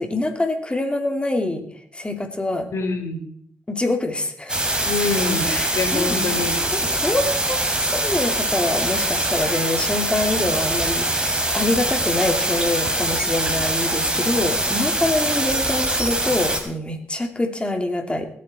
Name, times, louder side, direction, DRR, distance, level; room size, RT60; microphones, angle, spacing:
voice 1, 0.0-1.7 1.9-2.7 3.7-4.8 5.5-6.4 6.7-18.3, left 2 dB, 20° left, 5 dB, 2.7 m, -25 dB
voice 2, 2.7-3.2 4.8-6.6, left 3 dB, 70° left, 4 dB, 3.4 m, -25 dB
sound 1, 4.5-16.6, right 1 dB, 20° right, 3.5 m, -23 dB
20.0 x 8.5 x 4.3 m, 0.63 s
cardioid pair, 55°, 5 cm